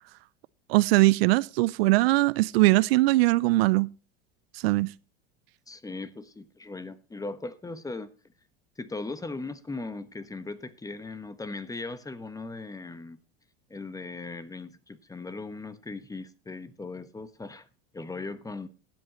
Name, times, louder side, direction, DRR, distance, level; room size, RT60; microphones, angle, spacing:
voice 1, 0.7-3.9 4.6-4.9, right 20 dB, 75° right, 0.5 m, -21 dB
voice 2, 5.7-8.1 8.8-13.2 13.7-17.7 17.9-18.7, left 3 dB, 10° left, 1.1 m, -38 dB
19.5 x 7.8 x 3.0 m
hypercardioid pair, 95°, 30 cm